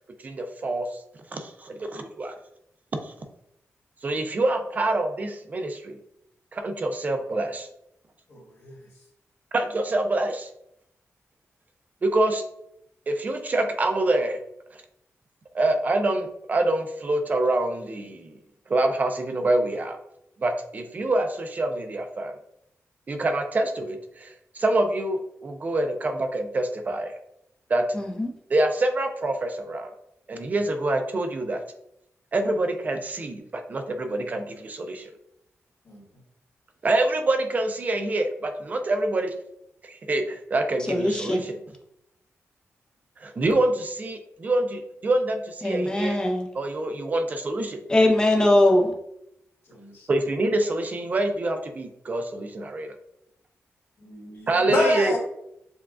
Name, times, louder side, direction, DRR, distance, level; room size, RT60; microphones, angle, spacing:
voice 1, 0.2-1.0 1.3-2.4 3.0-3.1 4.0-6.0 6.5-7.7 9.5-10.5 12.0-12.4 13.1-14.4 14.7-14.8 15.5-18.3 18.7-20.0 20.4-22.3 23.1-27.1 27.7-27.9 28.5-29.9 30.3-31.6 32.3-35.1 36.8-39.4 39.8-41.5 43.2-46.2 46.5-47.8 50.1-53.0 54.5-55.1, right 2 dB, 35° right, 0.4 m, -26 dB
voice 2, 8.3-8.8 35.9-36.0 49.7-50.1 54.0-55.2, left 1 dB, 60° left, 1.5 m, -28 dB
voice 3, 27.9-28.3 40.9-41.4 45.6-46.5 47.9-48.9, left 1 dB, 15° left, 0.6 m, -21 dB
6.8 x 2.3 x 2.4 m
wide cardioid pair, 170°, 5 cm